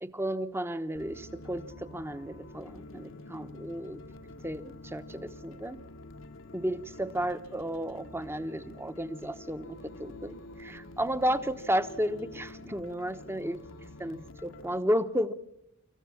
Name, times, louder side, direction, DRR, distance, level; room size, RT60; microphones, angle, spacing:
voice 1, 0.0-4.0 4.4-5.8 6.5-13.6 14.0-15.3, equal, 10° right, 12 dB, 1.0 m, -33 dB
sound 1, 0.9-14.8, left 2 dB, 65° left, 1.1 m, -47 dB
26.5 x 14.5 x 7.1 m, 0.87 s
head